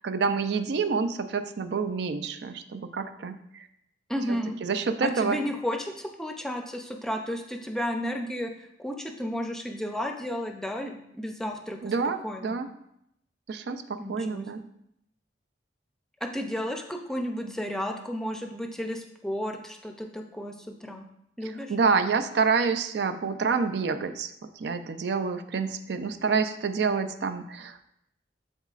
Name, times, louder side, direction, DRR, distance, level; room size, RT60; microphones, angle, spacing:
voice 1, 0.0-3.7 4.3-5.4 11.8-12.7 13.5-14.6 21.4-27.8, right 5 dB, 60° right, 9 dB, 0.4 m, -28 dB
voice 2, 4.1-4.6 5.0-8.5 8.8-11.9 12.2-12.5 14.0-14.4 16.2-21.1 21.4-21.7, equal, 5° left, 3 dB, 0.5 m, -33 dB
11.0 x 4.1 x 2.4 m, 0.77 s
head